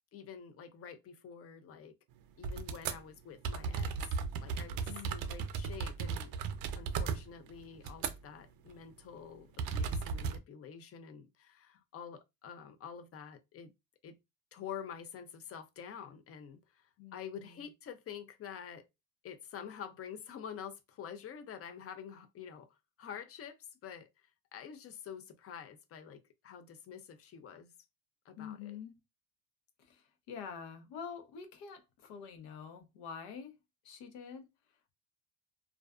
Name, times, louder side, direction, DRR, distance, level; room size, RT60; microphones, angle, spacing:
voice 1, 0.1-1.9 2.4-3.9 4.4-6.4 6.7-13.7 14.0-14.2 14.5-18.9 19.2-27.7 28.3-28.8, left 8 dB, 35° left, 0.5 m, -48 dB
sound 1, 2.4-3.0 3.4-8.4 8.7-8.9 9.6-10.4, right 5 dB, 60° right, 0.6 m, -36 dB
voice 2, 4.9-5.4 17.0-17.7 28.4-29.0 29.8-33.5 33.8-34.5, left 6 dB, 75° left, 0.8 m, -47 dB
2.4 x 2.3 x 2.3 m
supercardioid pair, 90°, 41 cm